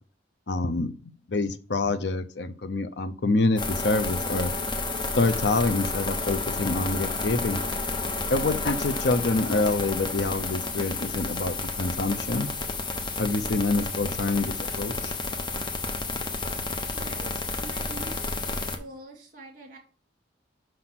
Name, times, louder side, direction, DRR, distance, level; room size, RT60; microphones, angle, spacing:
voice 1, 0.5-0.9 1.3-4.5 5.2-7.6 8.3-12.5 13.2-15.1, left 3 dB, 65° left, 12 dB, 0.7 m, -26 dB
sound 1, 3.6-18.8, left 3 dB, 25° left, 1.0 m, -31 dB
voice 2, 16.9-19.8, right 2 dB, 45° right, 3 dB, 2.6 m, -45 dB
6.4 x 5.9 x 6.0 m, 0.39 s
head